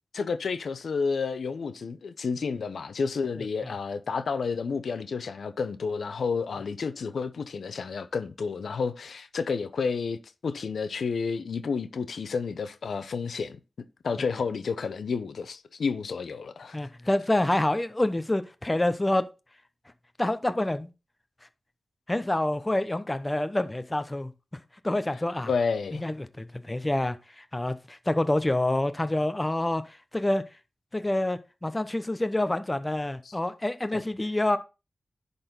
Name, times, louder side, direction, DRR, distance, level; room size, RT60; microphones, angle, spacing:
voice 1, 0.1-10.2 10.4-13.6 14.0-16.8 25.5-26.0 33.2-33.3 33.9-34.0, left 5 dB, 80° left, 0.7 m, -30 dB
voice 2, 3.4-3.7 16.7-19.3 20.2-20.9 22.1-24.3 24.8-25.5 26.0-30.4 30.9-34.6, left 1 dB, 20° left, 0.8 m, -27 dB
10.5 x 4.1 x 5.2 m
cardioid pair, 70°, 0 cm